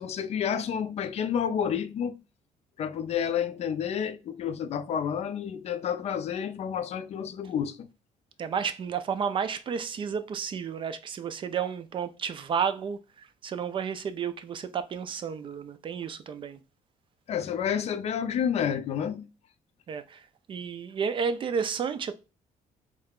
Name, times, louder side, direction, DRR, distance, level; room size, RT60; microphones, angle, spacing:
voice 1, 0.0-2.2 2.8-7.9 17.3-19.3, left 8 dB, 50° left, 0.4 m, -30 dB
voice 2, 8.4-13.0 13.4-16.6 19.9-20.2 20.5-22.1, right 6 dB, 35° right, 0.3 m, -31 dB
3.2 x 2.4 x 3.3 m
cardioid pair, 135°, 14 cm